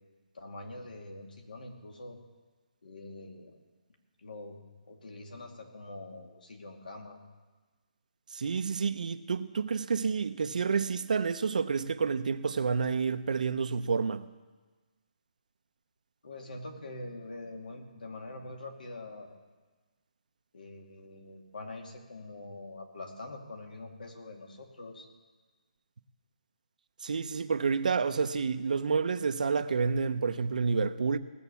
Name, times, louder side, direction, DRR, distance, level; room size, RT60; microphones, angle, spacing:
voice 1, 0.3-2.2 2.8-3.6 4.2-4.6 4.9-7.2 16.2-19.4 20.5-25.1, left 2 dB, 80° left, 2.5 m, -44 dB
voice 2, 8.3-14.3 27.0-31.2, right 5 dB, 65° right, 0.7 m, -29 dB
18.0 x 7.3 x 6.9 m
hypercardioid pair, 165°, 5 cm